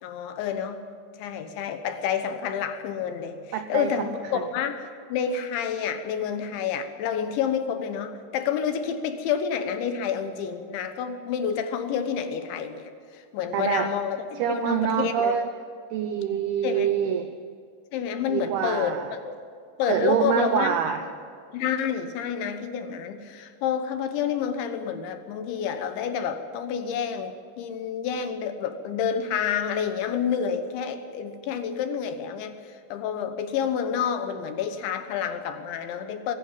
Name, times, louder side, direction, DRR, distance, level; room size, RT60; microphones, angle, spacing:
voice 1, 0.0-0.8 1.2-15.4 16.6-16.9 17.9-19.4 19.8-21.0 21.5-36.4, left 7 dB, 75° left, 8 dB, 3.4 m, -29 dB
voice 2, 3.5-4.1 4.3-4.4 13.5-13.9 14.4-15.5 15.9-17.3 18.3-19.1 19.9-21.1, right 9 dB, 75° right, 8 dB, 2.3 m, -26 dB
22.5 x 16.5 x 8.9 m, 2.4 s
omnidirectional pair, 5.6 m